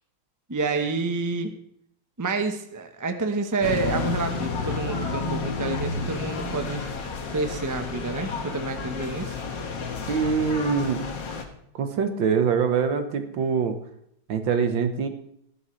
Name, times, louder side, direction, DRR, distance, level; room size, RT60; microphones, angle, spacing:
voice 1, 0.5-1.5 2.2-6.9 7.3-9.4, right 3 dB, 20° right, 5 dB, 0.5 m, -28 dB
sound 1, 3.6-11.4, left 4 dB, 65° left, 2.1 m, -31 dB
voice 2, 10.1-11.0 11.8-13.8 14.3-15.1, right 6 dB, 70° right, 7 dB, 1.9 m, -24 dB
15.5 x 11.5 x 3.3 m, 0.73 s
omnidirectional pair, 2.2 m